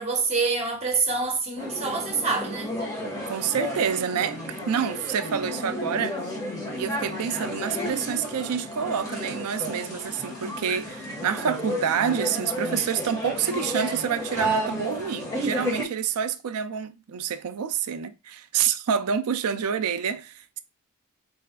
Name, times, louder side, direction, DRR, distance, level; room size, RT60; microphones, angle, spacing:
voice 1, 0.0-2.7, right 4 dB, 30° right, 1.0 m, -26 dB
sound 1, 1.6-15.8, equal, 15° left, 1.3 m, -32 dB
voice 2, 3.2-6.2 6.8-20.6, right 7 dB, 80° right, 0.4 m, -28 dB
4.0 x 3.3 x 2.3 m
head